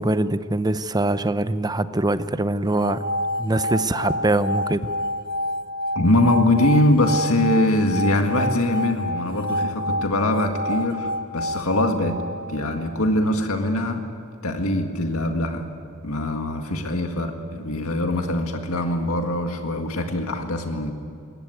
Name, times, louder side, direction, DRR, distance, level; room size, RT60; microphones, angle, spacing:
voice 1, 0.0-3.0 3.4-4.9, right 2 dB, 20° right, 13 dB, 0.6 m, -23 dB
sound 1, 2.7-12.8, equal, 45° right, 1.2 m, -28 dB
voice 2, 6.0-12.2 12.5-14.0 14.4-15.7 16.0-20.9, left 1 dB, 80° left, 4 dB, 1.9 m, -22 dB
21.0 x 18.0 x 9.4 m, 2.5 s
head